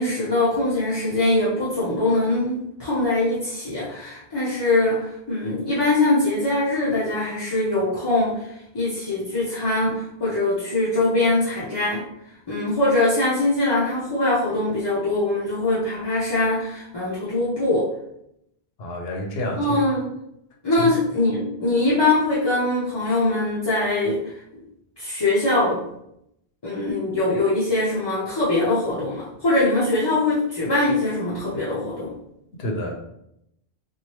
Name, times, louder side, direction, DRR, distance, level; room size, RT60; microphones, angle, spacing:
voice 1, 0.0-12.0 12.5-17.9 19.6-20.1 20.6-24.3 25.0-25.8 26.6-32.1, left 2 dB, 30° left, -8 dB, 0.6 m, -22 dB
voice 2, 18.8-19.9 20.7-20.9 32.5-32.9, equal, 70° left, 1 dB, 0.9 m, -29 dB
3.0 x 2.5 x 2.9 m, 0.78 s
omnidirectional pair, 1.1 m